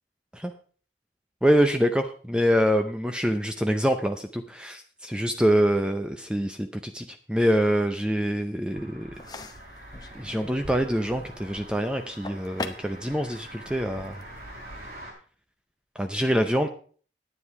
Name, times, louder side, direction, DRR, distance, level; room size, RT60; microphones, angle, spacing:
voice 1, 1.4-9.1 10.1-14.1 16.0-16.7, equal, 5° right, 6 dB, 0.5 m, -25 dB
sound 1, 8.7-15.1, right 1 dB, 55° right, 4.2 m, -44 dB
sound 2, 9.1-15.0, left 2 dB, 20° left, 0.8 m, -43 dB
9.9 x 9.9 x 4.8 m, 0.43 s
head